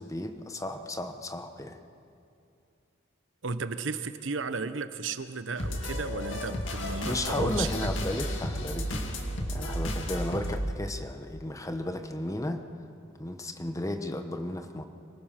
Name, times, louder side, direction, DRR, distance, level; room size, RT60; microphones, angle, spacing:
voice 1, 0.0-1.8 7.1-9.1 9.5-12.7 13.2-14.9, left 1 dB, 15° left, 7 dB, 1.1 m, -34 dB
voice 2, 3.4-7.9, right 4 dB, 80° right, 11 dB, 0.9 m, -34 dB
sound 1, 5.6-10.6, equal, 80° left, 2.2 m, -33 dB
25.0 x 19.5 x 5.9 m, 2.6 s
head